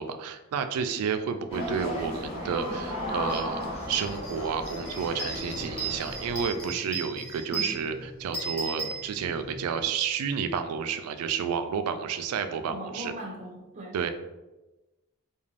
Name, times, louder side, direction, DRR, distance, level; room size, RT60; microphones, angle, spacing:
voice 1, 0.0-13.1 13.9-14.1, right 6 dB, 90° right, 12 dB, 0.3 m, -31 dB
sound 1, 1.5-6.5, left 1 dB, 30° left, 0.7 m, -35 dB
sound 2, 3.3-3.4 3.8-9.6, right 3 dB, 50° left, 1.2 m, -36 dB
voice 2, 7.5-7.8 12.7-14.0, equal, 35° right, -1 dB, 0.5 m, -39 dB
2.5 x 2.3 x 3.1 m, 1.1 s
head